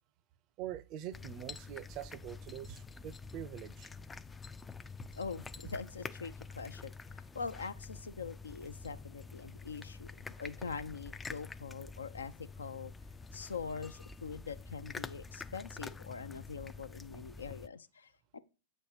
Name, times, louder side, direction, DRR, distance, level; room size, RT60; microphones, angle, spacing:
voice 1, 0.6-3.9, right 11 dB, 40° right, 0.5 m, -44 dB
sound 1, 1.1-17.7, left 4 dB, 15° left, 0.3 m, -47 dB
voice 2, 5.1-6.9 7.3-12.9 13.3-18.4, left 5 dB, 75° left, 0.6 m, -43 dB
7.9 x 4.3 x 4.8 m
figure-of-eight pair, 100°, 0 cm